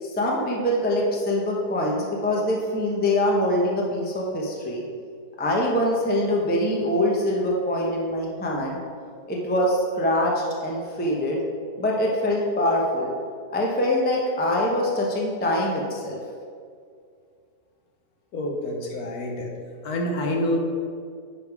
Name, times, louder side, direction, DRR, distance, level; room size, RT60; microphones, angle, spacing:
voice 1, 0.0-4.8 5.4-8.8 9.3-11.4 11.8-13.1 13.5-16.2, left 1 dB, 10° left, -2 dB, 0.5 m, -24 dB
voice 2, 18.3-19.5 19.8-20.6, left 1 dB, 65° left, 1 dB, 1.3 m, -27 dB
10.0 x 3.5 x 4.8 m, 2.2 s
omnidirectional pair, 1.8 m